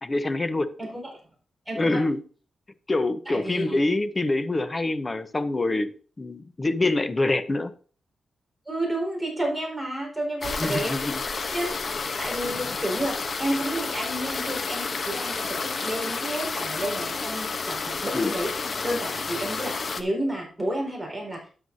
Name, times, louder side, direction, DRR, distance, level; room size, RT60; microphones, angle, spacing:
voice 1, 0.0-0.8 1.7-2.2 2.9-5.9 6.2-7.7 10.6-11.2 18.1-18.4, left 2 dB, 25° left, 0.8 m, -25 dB
voice 2, 1.7-2.0 3.3-3.8 8.7-11.0 11.5-18.5 18.8-21.5, right 1 dB, ahead, 4.5 m, -31 dB
sound 1, 10.4-20.0, left 4 dB, 45° left, 0.9 m, -30 dB
12.5 x 9.0 x 2.7 m
wide cardioid pair, 140°, 0 cm